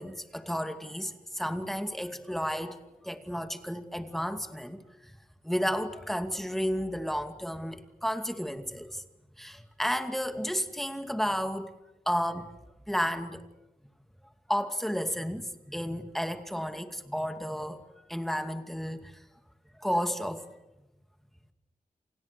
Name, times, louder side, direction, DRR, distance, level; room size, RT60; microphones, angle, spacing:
voice 1, 0.0-2.8 3.0-5.1 5.4-9.0 9.4-11.7 12.1-12.5 12.9-13.5 14.5-17.8 18.1-19.1 19.8-20.4, equal, ahead, 2.4 m, -32 dB
29.5 x 28.0 x 6.9 m
wide cardioid pair, 125°, 14 cm